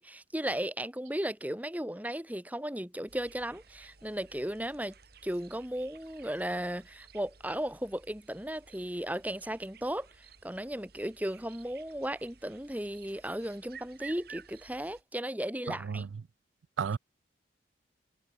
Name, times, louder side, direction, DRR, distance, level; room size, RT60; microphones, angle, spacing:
voice 1, 0.0-4.9 5.2-16.0, right 1 dB, 10° right, 1.6 m, -35 dB
sound 1, 3.1-15.0, right 6 dB, 55° right, 2.7 m, -55 dB
voice 2, 15.7-16.1 16.8-17.0, right 6 dB, 80° right, 0.4 m, -32 dB
head